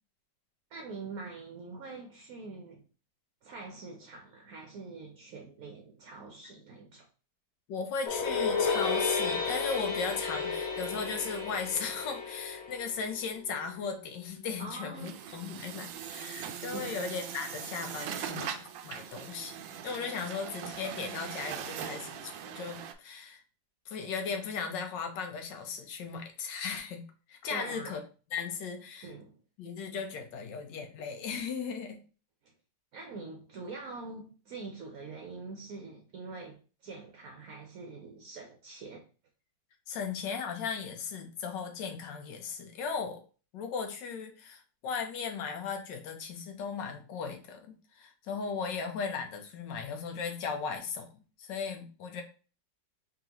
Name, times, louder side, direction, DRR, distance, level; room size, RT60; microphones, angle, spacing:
voice 1, 0.7-2.8 3.4-7.1 14.6-15.1 16.4-16.9 27.5-28.0 29.0-29.4 32.9-39.0, right 3 dB, 60° right, 1.1 m, -44 dB
voice 2, 7.7-19.5 19.8-23.4 23.9-27.0 27.3-28.0 28.3-29.1 29.6-32.0 39.9-43.2 43.5-51.1 51.4-52.2, left 5 dB, 75° left, 1.4 m, -37 dB
sound 1, 8.1-13.3, left 5 dB, 50° left, 0.8 m, -32 dB
Truck, 14.9-22.9, right 9 dB, 85° right, 1.3 m, -41 dB
3.9 x 3.8 x 2.9 m
omnidirectional pair, 2.0 m